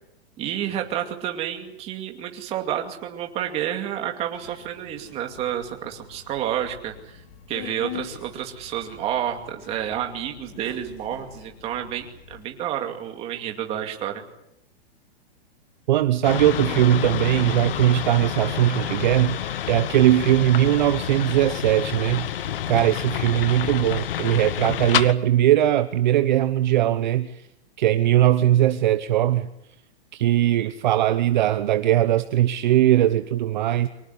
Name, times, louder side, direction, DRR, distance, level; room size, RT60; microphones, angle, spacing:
voice 1, 0.4-14.2, right 10 dB, 20° right, 4 dB, 2.4 m, -30 dB
Subway metro underground, 4.3-12.4, left 9 dB, 35° left, 3.3 m, -44 dB
voice 2, 15.9-27.3 27.8-29.5 30.1-33.9, right 13 dB, 45° right, 10 dB, 1.0 m, -20 dB
sound 1, 16.2-25.1, left 11 dB, 60° left, 1.1 m, -29 dB
24.5 x 19.0 x 9.8 m, 0.84 s
hypercardioid pair, 170°, 32 cm